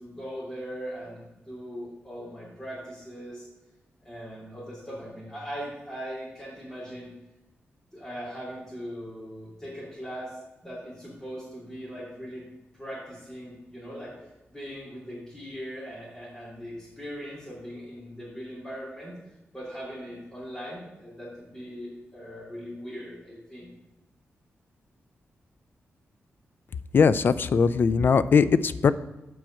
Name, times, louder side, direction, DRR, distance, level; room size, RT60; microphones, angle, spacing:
voice 1, 0.0-3.5 4.0-7.1 7.9-12.4 12.7-19.1 19.5-23.7, equal, 10° left, -10 dB, 3.0 m, -40 dB
voice 2, 26.9-28.9, left 5 dB, 50° left, 15 dB, 0.4 m, -20 dB
7.7 x 4.8 x 7.2 m, 1.0 s
wide cardioid pair, 130°, 5 cm